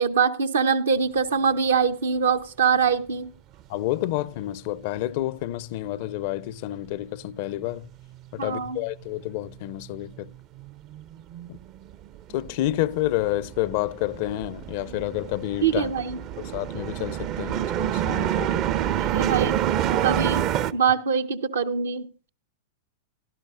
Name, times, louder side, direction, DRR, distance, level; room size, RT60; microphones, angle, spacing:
voice 1, 0.0-3.3 8.4-8.8 15.6-16.2 19.0-19.6 20.0-20.5 20.7-22.3, right 6 dB, 70° right, 0.9 m, -23 dB
voice 2, 3.7-7.9 8.3-10.3 11.5-11.6 12.3-15.9 16.4-18.6, left 15 dB, 50° left, 0.5 m, -29 dB
sound 1, 7.8-7.9 8.1-9.3 9.6-20.7, right 11 dB, 40° right, 0.6 m, -28 dB
17.0 x 12.0 x 2.5 m
figure-of-eight pair, 95°, 0 cm